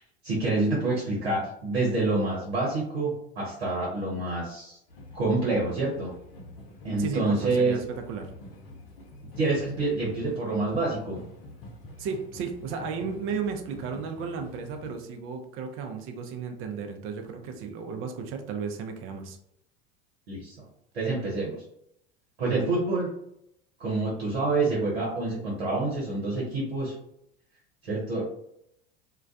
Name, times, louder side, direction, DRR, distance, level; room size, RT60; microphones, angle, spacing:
voice 1, 0.0-4.8 5.1-6.1 6.8-7.8 9.4-11.2 20.3-20.6 20.9-21.5 22.4-23.1 23.8-26.9 27.8-28.2, right 2 dB, 90° right, -4 dB, 0.9 m, -27 dB
sound 1, 4.9-14.9, left 1 dB, 75° left, 0.7 m, -46 dB
voice 2, 7.0-8.3 12.0-19.4, right 5 dB, 45° right, 5 dB, 0.5 m, -34 dB
2.2 x 2.2 x 2.5 m, 0.76 s
hypercardioid pair, 80°, 30 cm